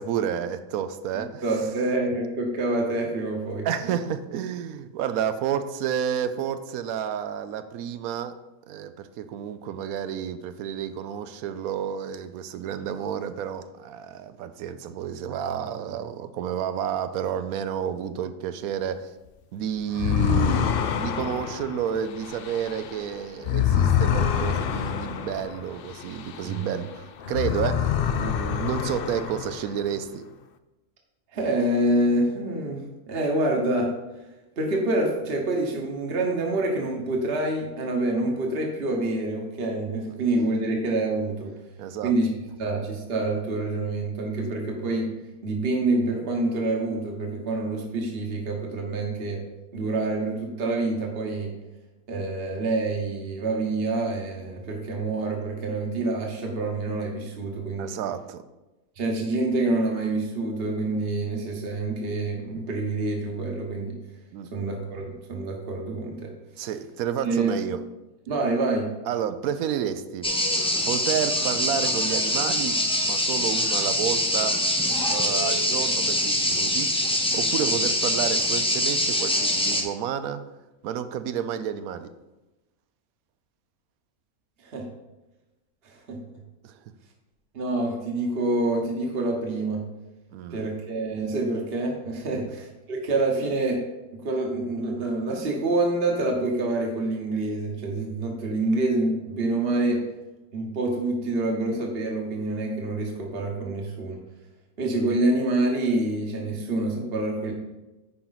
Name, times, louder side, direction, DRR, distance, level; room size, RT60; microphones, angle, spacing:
voice 1, 0.0-1.4 3.6-8.3 8.7-19.1 19.5-30.2 41.8-42.1 57.8-58.4 64.3-64.5 66.6-67.8 69.1-70.3 70.9-72.8 73.1-74.6 75.1-80.4 80.8-82.1 86.6-86.8 90.3-90.6 92.4-92.5, right 8 dB, 85° right, 12 dB, 1.0 m, -30 dB
voice 2, 1.4-3.7 26.4-26.7 31.3-32.8 33.1-33.9 34.6-41.5 42.0-42.3 42.6-45.1 45.4-49.4 49.7-51.5 52.1-57.9 59.0-63.9 64.5-66.3 67.2-67.5 68.3-68.9 84.6-84.8 85.8-86.2 87.5-89.8 90.5-93.8 94.2-100.0 100.5-104.2 104.8-107.5, right 2 dB, 45° right, 0 dB, 1.2 m, -27 dB
sound 1, 19.9-26.9 27.2-29.9, left 8 dB, 75° left, 0.5 m, -26 dB
sound 2, 70.2-79.8, left 1 dB, 5° left, 0.5 m, -24 dB
10.0 x 4.4 x 4.0 m, 1.1 s
omnidirectional pair, 1.5 m